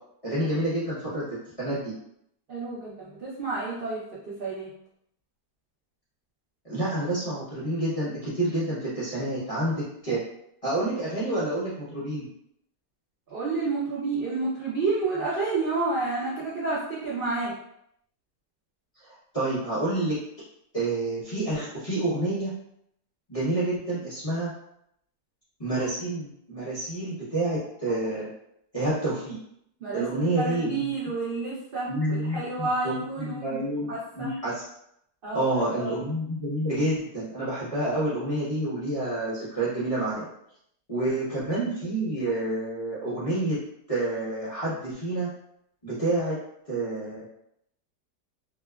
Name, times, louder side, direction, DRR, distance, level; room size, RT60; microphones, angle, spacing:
voice 1, 0.2-1.2 1.6-1.9 6.6-10.2 10.6-12.3 19.0-20.2 20.7-22.5 23.3-24.5 25.6-28.3 28.7-29.4 29.9-30.9 31.9-34.6 35.3-40.3 40.9-43.6 43.9-45.3 45.8-46.4 46.7-47.3, right 1 dB, 35° left, -12 dB, 0.6 m, -28 dB
voice 2, 2.5-4.7 13.3-17.5 29.8-33.6 33.9-34.3 35.2-36.0, right 3 dB, 75° right, -8 dB, 0.5 m, -30 dB
2.8 x 2.2 x 2.2 m, 0.74 s
omnidirectional pair, 1.7 m